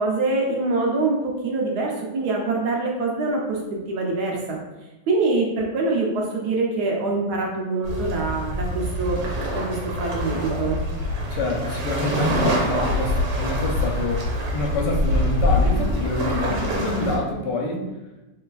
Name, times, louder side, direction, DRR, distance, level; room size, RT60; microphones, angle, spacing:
voice 1, 0.0-3.6 3.9-4.6 5.1-9.2 9.5-10.8, right 3 dB, 70° right, -1 dB, 1.2 m, -24 dB
sound 1, 7.8-17.2, left 1 dB, 90° right, 1.4 m, -25 dB
voice 2, 11.3-14.3 14.5-17.9, left 2 dB, 80° left, 0 dB, 1.2 m, -26 dB
3.3 x 3.2 x 2.3 m, 1.0 s
omnidirectional pair, 1.9 m